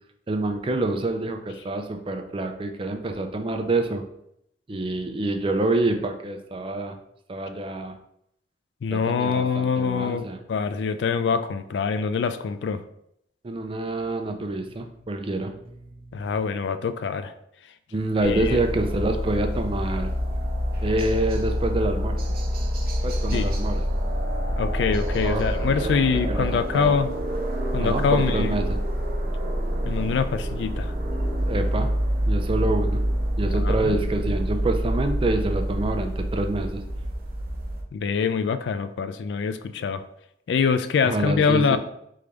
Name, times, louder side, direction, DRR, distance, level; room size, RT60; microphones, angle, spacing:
voice 1, 0.3-4.0 4.7-7.0 7.3-7.9 8.9-10.4 13.4-16.3 17.9-20.1 20.8-22.2 23.0-23.8 25.2-25.4 25.8-25.9 26.3-27.0 27.8-28.8 31.4-31.9 32.3-33.0 33.4-36.8 41.0-41.8, right 2 dB, 30° right, 5 dB, 0.4 m, -27 dB
voice 2, 8.8-12.8 16.1-17.3 18.2-18.6 23.3-23.5 24.6-27.1 27.7-28.5 29.4-29.5 29.8-30.9 33.6-34.0 37.9-40.0 40.5-41.8, left 5 dB, 70° left, 11 dB, 0.3 m, -24 dB
sound 1, 18.2-37.8, equal, 55° right, 0.8 m, -26 dB
3.8 x 3.3 x 3.5 m, 0.75 s
head